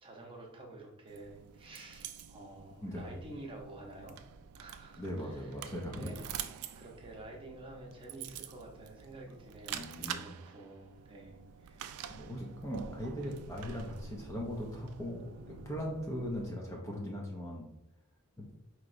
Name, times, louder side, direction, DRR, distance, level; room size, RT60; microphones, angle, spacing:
voice 1, 0.0-4.2 4.6-5.5 5.9-6.2 6.8-12.0, right 2 dB, 25° right, -1 dB, 0.7 m, -50 dB
sound 1, 1.1-16.5, right 8 dB, 75° right, 0.3 m, -47 dB
voice 2, 5.0-6.2 9.7-10.3 12.2-17.7, equal, 15° left, -1 dB, 0.5 m, -39 dB
4.6 x 3.0 x 2.5 m, 0.86 s
head